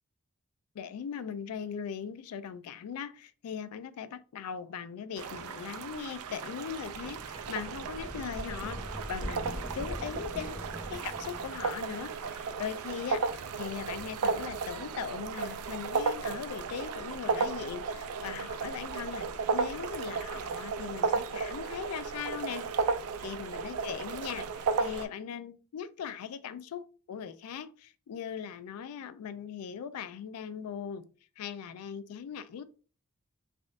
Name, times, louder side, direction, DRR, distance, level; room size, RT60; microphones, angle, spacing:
voice 1, 0.7-10.6 10.9-24.5 24.8-31.1 31.4-32.6, left 7 dB, 80° left, 0.3 m, -40 dB
sound 1, 5.2-25.0, right 5 dB, 80° right, 0.4 m, -34 dB
sound 2, 6.9-11.7, equal, 5° right, 0.8 m, -42 dB
3.4 x 2.5 x 2.4 m
head